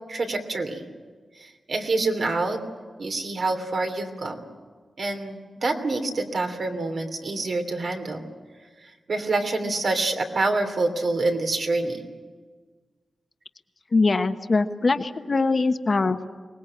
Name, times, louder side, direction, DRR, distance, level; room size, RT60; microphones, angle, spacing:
voice 1, 0.1-0.9 1.4-2.6 3.0-4.4 5.0-8.2 9.1-12.0, right 2 dB, 65° right, 4 dB, 3.0 m, -26 dB
voice 2, 13.9-16.3, left 3 dB, 45° left, 8 dB, 1.2 m, -22 dB
23.5 x 19.5 x 8.7 m, 1.5 s
wide cardioid pair, 85°, 0 cm